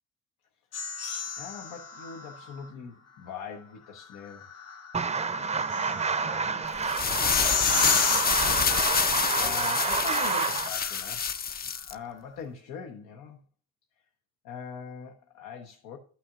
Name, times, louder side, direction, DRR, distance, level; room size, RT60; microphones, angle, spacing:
sound 1, 0.7-2.7 4.1-11.3, left 6 dB, 55° left, 1.3 m, -34 dB
voice 1, 1.4-4.5 9.4-11.5 11.9-13.4 14.4-16.0, left 7 dB, 90° left, 0.9 m, -41 dB
sound 2, 4.9-10.7, right 5 dB, 20° right, 0.5 m, -29 dB
sound 3, 6.8-11.9, left 7 dB, 30° left, 0.4 m, -27 dB
12.5 x 5.8 x 2.5 m
cardioid pair, 90°, 30 cm